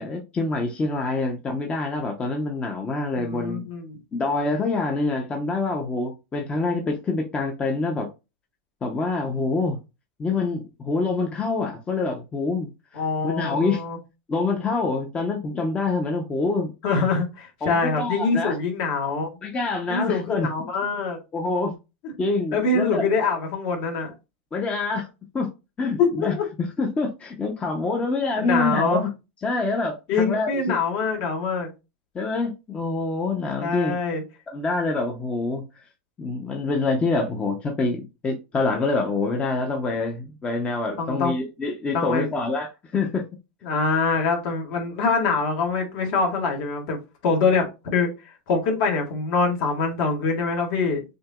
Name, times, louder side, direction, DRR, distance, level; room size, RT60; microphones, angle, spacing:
voice 1, 0.0-3.6 4.1-8.1 8.8-9.8 10.2-13.8 14.3-16.7 17.6-18.5 19.4-20.7 21.3-21.8 22.2-23.1 24.5-25.1 25.3-25.5 25.8-29.1 29.4-30.8 32.1-34.0 34.5-35.6 36.2-43.3, left 3 dB, 20° left, 0.8 m, -26 dB
voice 2, 3.2-4.0 12.9-14.0 16.8-19.3 19.9-21.2 22.5-24.1 26.0-26.5 28.4-29.1 30.1-31.7 33.6-34.2 41.0-41.3 41.9-42.3 43.6-51.0, left 4 dB, 55° left, 1.7 m, -24 dB
6.4 x 2.8 x 2.3 m
supercardioid pair, 130°, 6 cm